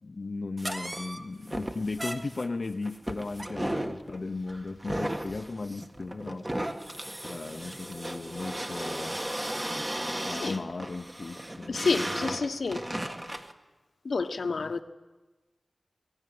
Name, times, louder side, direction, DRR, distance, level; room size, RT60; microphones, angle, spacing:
voice 1, 0.0-6.5 7.3-9.2 10.2-12.1 14.5-14.7, left 3 dB, 55° left, 0.7 m, -36 dB
sound 1, 0.6-13.5, right 1 dB, 20° right, 1.6 m, -35 dB
voice 2, 11.7-12.8 14.0-14.8, left 4 dB, 80° left, 1.1 m, -29 dB
21.5 x 17.5 x 9.5 m
wide cardioid pair, 70°, 0 cm